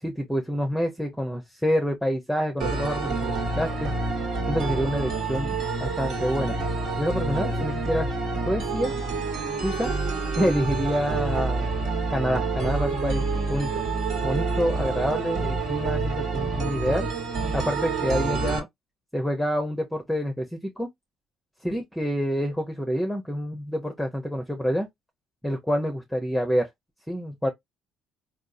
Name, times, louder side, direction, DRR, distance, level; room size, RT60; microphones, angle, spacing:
voice 1, 0.0-3.9 4.5-5.5 5.8-6.6 7.0-8.1 8.5-9.0 9.6-9.9 10.4-11.7 12.1-13.8 14.2-17.1 17.5-18.7 19.1-20.9 21.6-24.9 25.4-26.7 27.1-27.5, equal, ahead, 0.9 m, -27 dB
sound 1, 2.6-18.6, right 3 dB, 60° right, 1.6 m, -28 dB
3.6 x 2.4 x 2.7 m
supercardioid pair, 85°, 0 cm